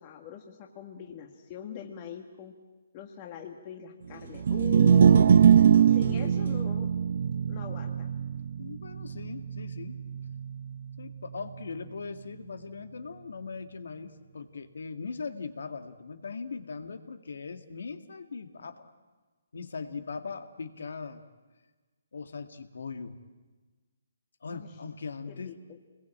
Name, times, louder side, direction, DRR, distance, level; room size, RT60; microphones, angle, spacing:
voice 1, 0.0-2.5 2.9-5.4 5.9-6.9 7.5-8.1 24.5-24.7 25.3-25.8, left 8 dB, 25° left, 3 dB, 1.7 m, -42 dB
sound 1, 4.3-10.7, right 8 dB, 55° right, 0.7 m, -22 dB
voice 2, 8.6-10.0 11.0-18.9 19.5-21.2 22.1-23.2 24.4-25.6, left 4 dB, 75° left, 8 dB, 2.0 m, -40 dB
26.5 x 21.0 x 8.8 m, 1.3 s
hypercardioid pair, 165°, 0 cm